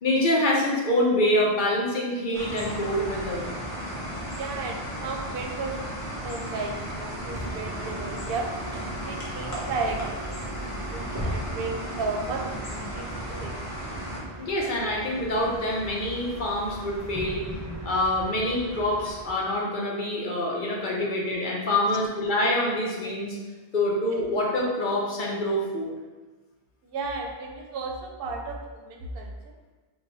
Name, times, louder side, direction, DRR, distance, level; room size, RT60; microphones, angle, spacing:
voice 1, 0.0-3.6 14.4-17.4 17.8-23.4 23.7-25.9, left 1 dB, 55° left, -3 dB, 0.8 m, -26 dB
sound 1, 2.3-14.2, equal, 20° left, 0.7 m, -35 dB
voice 2, 4.3-8.5 9.0-10.4 10.7-13.6 21.6-22.0 24.1-24.2 26.8-29.3, right 3 dB, 70° right, 1 dB, 0.7 m, -34 dB
Bus, 7.1-19.5, right 1 dB, 25° right, 0.4 m, -39 dB
2.9 x 2.2 x 3.9 m, 1.3 s
omnidirectional pair, 1.0 m